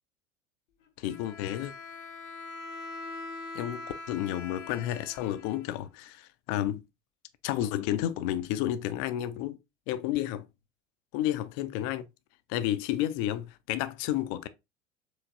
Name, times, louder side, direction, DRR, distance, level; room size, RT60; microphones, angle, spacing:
Bowed string instrument, 1.0-6.1, left 3 dB, 70° left, 0.8 m, -43 dB
voice 1, 1.0-1.7 3.5-6.8 7.4-9.6 9.9-10.5 11.1-12.0 12.5-14.5, left 12 dB, 40° left, 0.5 m, -31 dB
4.7 x 3.1 x 2.6 m
figure-of-eight pair, 70°, 37 cm